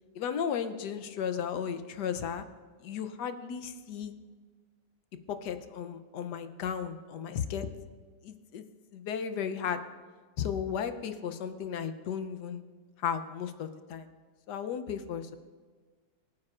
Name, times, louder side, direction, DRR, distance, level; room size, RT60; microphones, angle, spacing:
voice 1, 0.1-2.4 2.8-4.1 5.3-7.7 8.2-8.6 8.9-9.8 10.4-12.6 13.0-14.1 14.5-15.4, left 7 dB, 70° left, 9 dB, 1.2 m, -34 dB
23.5 x 9.7 x 2.4 m, 1.5 s
omnidirectional pair, 2.0 m